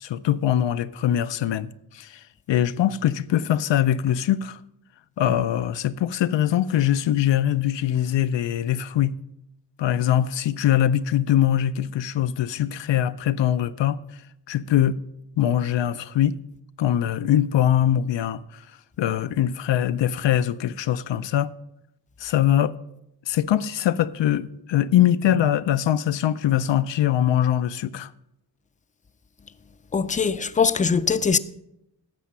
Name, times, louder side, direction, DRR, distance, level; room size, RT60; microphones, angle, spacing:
voice 1, 0.0-2.2 2.5-4.6 5.2-9.1 9.8-14.0 14.5-15.0 15.4-16.4 16.8-18.4 19.0-21.5 22.2-22.8 23.3-28.1, left 11 dB, 90° left, 0.6 m, -22 dB
voice 2, 29.9-31.4, left 5 dB, 20° left, 0.4 m, -21 dB
12.0 x 7.5 x 5.5 m
wide cardioid pair, 95°, 42 cm